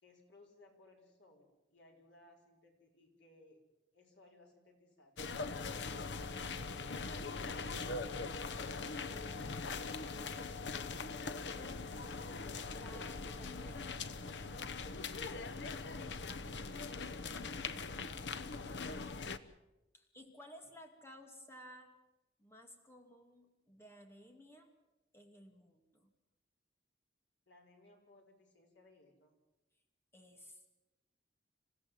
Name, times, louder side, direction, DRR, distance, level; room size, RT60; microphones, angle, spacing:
voice 1, 0.0-3.6 3.9-7.6 27.5-29.3, left 1 dB, 85° left, 1 dB, 4.9 m, -63 dB
sound 1, 5.2-19.4, left 4 dB, 70° left, 0.9 m, -41 dB
Wind instrument woodwind instrument, 5.5-13.9, left 1 dB, 5° right, 1.8 m, -59 dB
voice 2, 11.6-12.3 12.7-14.1 19.9-21.9 22.4-24.7 25.1-26.1 30.1-30.7, equal, 15° left, 4 dB, 2.5 m, -57 dB
27.5 x 15.5 x 7.8 m, 1.0 s
head